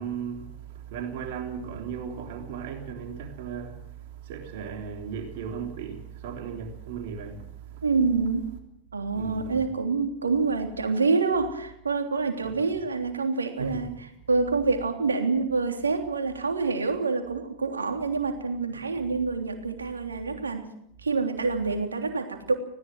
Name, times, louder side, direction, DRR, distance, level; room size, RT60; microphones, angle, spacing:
voice 1, 0.0-7.8 9.1-9.6 12.4-12.5 13.6-13.8 18.7-19.1, right 7 dB, 50° right, 3.5 m, -36 dB
voice 2, 7.8-8.5 8.9-13.9 14.3-20.7 21.0-22.5, right 4 dB, 75° right, 3.3 m, -27 dB
20.0 x 17.5 x 7.8 m
figure-of-eight pair, 90°, 0 cm